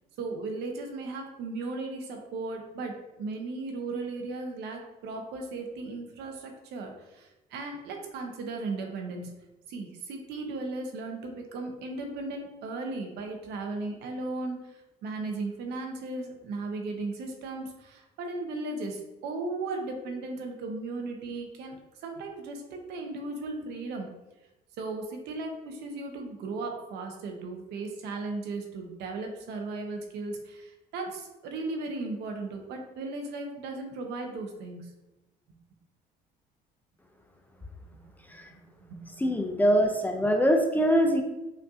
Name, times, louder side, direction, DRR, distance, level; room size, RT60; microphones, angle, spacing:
voice 1, 0.2-9.3 9.7-14.7 15.0-24.1 24.8-34.9 37.9-38.0 38.5-38.6 38.9-39.0, right 3 dB, 80° right, 3 dB, 0.8 m, -36 dB
voice 2, 39.2-41.2, equal, 10° left, 3 dB, 0.4 m, -23 dB
5.4 x 2.6 x 2.4 m, 1.0 s
cardioid pair, 110°, 17 cm